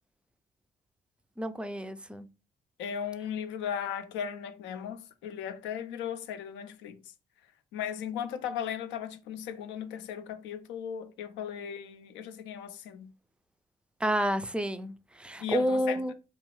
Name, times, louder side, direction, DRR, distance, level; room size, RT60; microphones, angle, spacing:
voice 1, 1.4-2.3 14.0-16.1, equal, 5° right, 0.3 m, -30 dB
voice 2, 2.8-7.0 7.7-13.1 15.4-16.1, left 8 dB, 80° left, 0.4 m, -37 dB
2.5 x 2.3 x 3.1 m
hypercardioid pair, 50°, 19 cm